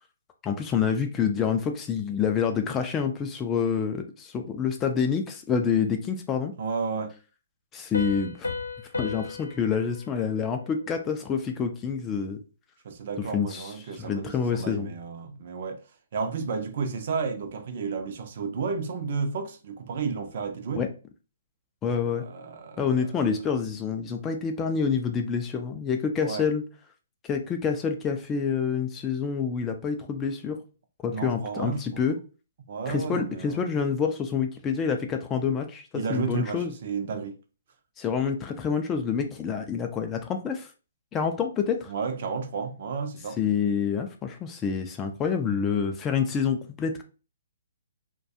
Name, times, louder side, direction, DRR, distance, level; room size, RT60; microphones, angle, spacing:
voice 1, 0.4-6.5 7.7-8.5 9.0-12.4 13.3-14.9 20.8-20.9 21.8-22.2 22.8-26.6 27.3-30.6 31.0-32.2 32.9-36.7 38.0-40.7 41.1-41.9 43.4-47.0, left 6 dB, 20° left, 0.3 m, -27 dB
voice 2, 6.6-7.1 12.8-15.8 16.1-20.8 22.1-23.3 26.2-26.5 31.1-32.0 32.7-33.6 35.9-37.4 41.9-43.4, right 5 dB, 55° right, 0.5 m, -32 dB
Piano, 7.9-11.4, left 4 dB, 90° left, 0.4 m, -36 dB
2.3 x 2.2 x 2.7 m
hypercardioid pair, 140°, 0 cm